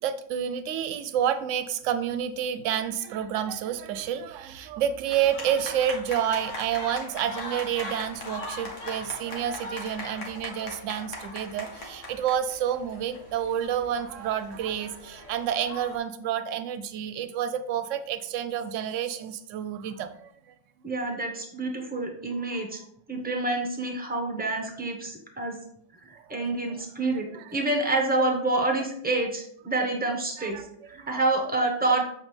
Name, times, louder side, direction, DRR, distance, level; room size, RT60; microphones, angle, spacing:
voice 1, 0.0-20.3 22.4-22.6 26.3-26.4 27.0-27.7 29.8-29.9 30.4-31.2, right 9 dB, 75° right, 11 dB, 0.9 m, -29 dB
sound 1, 5.1-16.0, left 1 dB, 70° left, 1.7 m, -40 dB
voice 2, 20.8-22.8 23.1-25.6 26.0-32.0, right 2 dB, 10° right, 2 dB, 0.9 m, -28 dB
7.3 x 4.2 x 3.2 m, 0.68 s
omnidirectional pair, 1.3 m